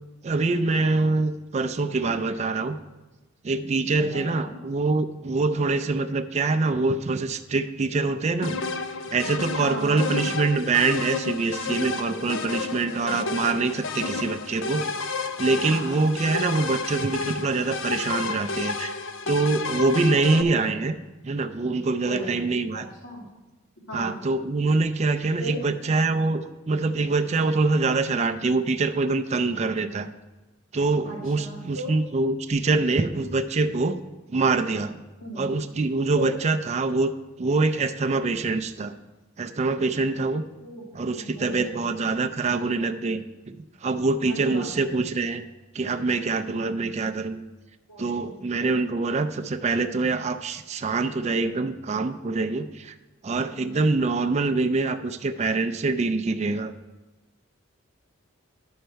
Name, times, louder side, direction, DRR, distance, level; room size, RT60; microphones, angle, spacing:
voice 1, 0.2-2.8 3.4-8.6 9.1-14.9 15.4-18.9 19.3-20.9 21.2-22.9 23.9-30.1 30.7-34.0 34.3-35.0 35.4-37.1 37.4-39.0 39.4-40.4 40.9-45.4 45.7-47.4 48.0-52.9 53.2-56.7, right 3 dB, 35° right, 8 dB, 0.4 m, -25 dB
voice 2, 4.1-4.5 9.6-10.4 13.0-13.4 15.6-16.0 20.3-20.8 22.0-22.4 22.7-23.3 23.9-24.3 25.4-25.6 31.1-32.0 35.2-35.5 36.1-36.3 40.6-40.8 41.1-41.9 44.3-45.0 47.9-48.4 53.6-53.7, right 1 dB, 85° left, -4 dB, 2.9 m, -37 dB
sound 1, 8.4-20.4, left 4 dB, 70° left, 0.6 m, -31 dB
10.0 x 6.5 x 4.5 m, 1.1 s
head